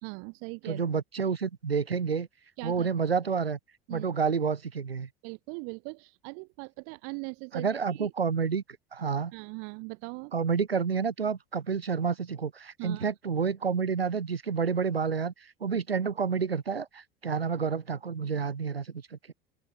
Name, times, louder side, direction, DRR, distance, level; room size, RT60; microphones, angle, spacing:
voice 1, 0.0-0.9 2.6-2.9 3.9-4.1 5.2-8.1 9.3-10.3 12.8-13.1, right 40 dB or more, 55° right, 1.5 m, -40 dB
voice 2, 0.7-2.3 2.6-3.6 3.9-5.1 7.5-8.6 8.9-9.3 10.3-15.3 15.6-19.3, right 6 dB, 90° right, 0.6 m, -29 dB
open air
figure-of-eight pair, 70°, 29 cm